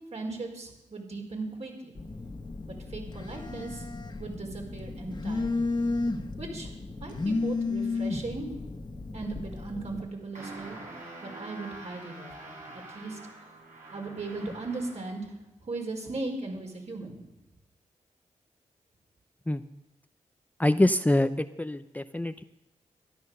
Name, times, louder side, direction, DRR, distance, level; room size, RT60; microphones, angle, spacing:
voice 1, 0.1-2.0 2.7-3.9 4.2-5.7 6.4-6.7 7.0-8.5 9.1-10.8 11.2-13.2 13.9-15.3 15.6-17.2, right 3 dB, 55° right, 1 dB, 4.9 m, -38 dB
Telephone, 2.0-10.0, left 3 dB, 35° left, 1.6 m, -33 dB
sound 1, 10.3-15.2, right 2 dB, 75° right, 5.9 m, -45 dB
voice 2, 20.6-22.4, left 1 dB, 10° left, 10 dB, 0.6 m, -25 dB
13.0 x 11.5 x 6.7 m, 0.95 s
supercardioid pair, 45°, 14 cm